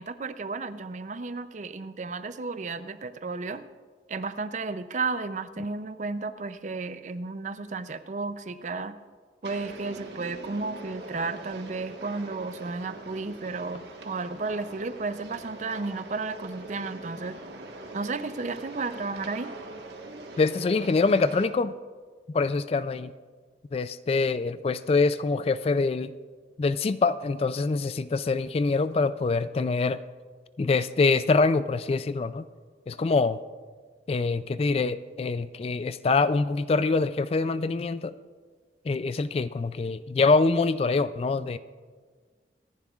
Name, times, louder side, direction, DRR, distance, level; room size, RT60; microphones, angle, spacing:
voice 1, 0.0-3.6 4.1-9.0 9.4-17.4 17.9-19.5, right 3 dB, 45° right, 12 dB, 0.5 m, -33 dB
sound 1, 9.4-21.5, right 2 dB, 75° right, 1.4 m, -42 dB
voice 2, 20.4-21.7 22.3-23.1 23.7-26.1 26.6-30.0 30.6-32.4 32.9-33.4 34.1-38.1 38.9-41.6, left 3 dB, 35° left, 14 dB, 0.3 m, -25 dB
24.5 x 10.5 x 2.4 m, 1.5 s
head